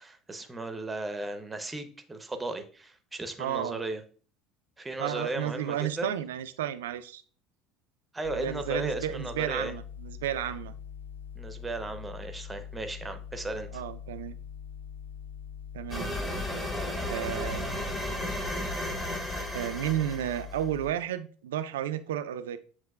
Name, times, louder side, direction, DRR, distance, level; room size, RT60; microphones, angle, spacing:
voice 1, 0.0-4.0 4.8-6.1 8.1-9.7 11.4-13.8, right 2 dB, 15° right, 8 dB, 0.7 m, -36 dB
voice 2, 3.4-3.8 5.0-7.2 8.3-10.7 13.7-14.4 15.7-16.2 17.0-17.7 19.5-22.6, right 11 dB, 75° right, 11 dB, 0.3 m, -32 dB
sound 1, 8.2-20.9, left 8 dB, 85° left, 0.5 m, -43 dB
sound 2, 15.9-20.7, left 1 dB, 10° left, 1.1 m, -34 dB
7.2 x 2.9 x 2.3 m, 0.42 s
figure-of-eight pair, 70°, 0 cm